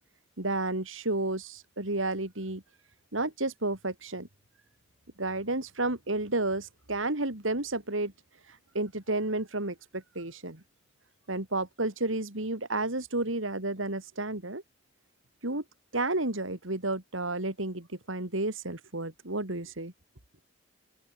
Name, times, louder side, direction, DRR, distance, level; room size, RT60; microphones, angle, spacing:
voice 1, 0.4-2.6 3.1-4.3 5.2-8.1 8.7-10.6 11.3-14.6 15.4-15.6 15.9-19.9, right 2 dB, 80° right, 3.5 m, -31 dB
open air
head